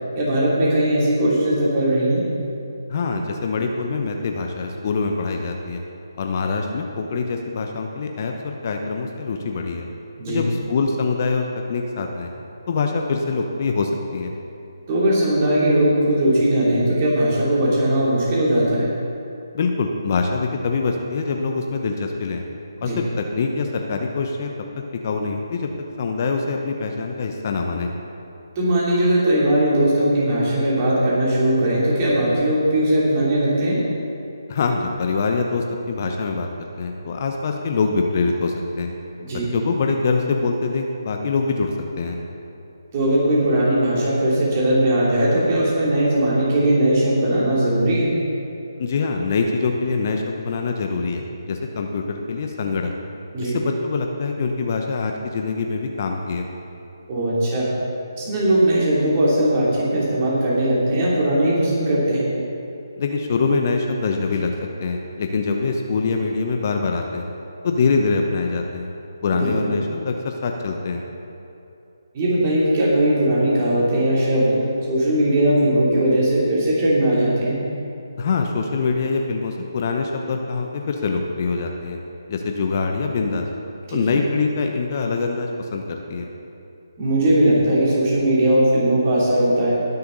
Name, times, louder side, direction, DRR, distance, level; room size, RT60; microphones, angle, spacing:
voice 1, 0.1-2.2 10.2-10.4 14.9-18.9 22.8-23.0 28.5-33.8 39.2-39.5 42.9-48.1 53.3-53.5 57.1-57.7 58.2-62.3 69.3-69.7 72.1-74.6 74.9-77.6 83.9-84.2 87.0-89.8, right 1 dB, 30° right, -6 dB, 3.2 m, -19 dB
voice 2, 2.9-5.8 6.2-9.9 10.3-12.3 12.7-14.3 19.5-22.4 22.8-22.9 23.2-24.5 25.0-25.7 26.0-27.9 34.5-36.5 36.8-38.9 39.5-42.2 48.8-52.9 53.4-56.5 63.0-64.5 64.8-67.3 67.6-68.9 69.2-71.0 78.2-82.0 82.3-83.5 83.9-86.3, left 4 dB, 40° left, 3 dB, 0.9 m, -24 dB
20.0 x 6.8 x 4.1 m, 2.7 s
figure-of-eight pair, 150°, 2 cm